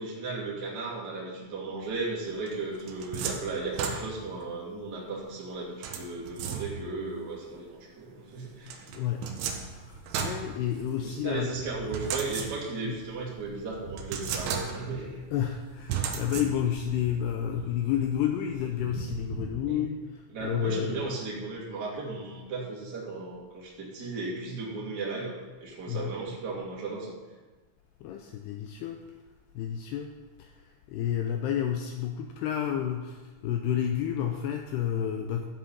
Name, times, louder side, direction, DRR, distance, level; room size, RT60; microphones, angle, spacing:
voice 1, 0.0-8.8 11.0-15.2 19.7-19.8 20.3-25.3 25.6-27.2, right 3 dB, 30° right, -4 dB, 2.2 m, -35 dB
sound 1, 2.5-4.4 5.8-7.0 8.7-11.2 11.9-12.9 13.4-13.5 14.0-15.1 15.9-16.9, right 7 dB, 90° right, 3.5 m, -35 dB
sound 2, 7.0-19.4, right 4 dB, 60° right, 3.1 m, -48 dB
voice 2, 8.9-9.3 9.6-11.5 12.8-13.0 15.3-21.1 25.9-26.1 28.0-29.1 29.6-35.5, left 9 dB, 80° left, 4 dB, 2.5 m, -31 dB
13.5 x 7.7 x 5.6 m, 1.3 s
omnidirectional pair, 5.3 m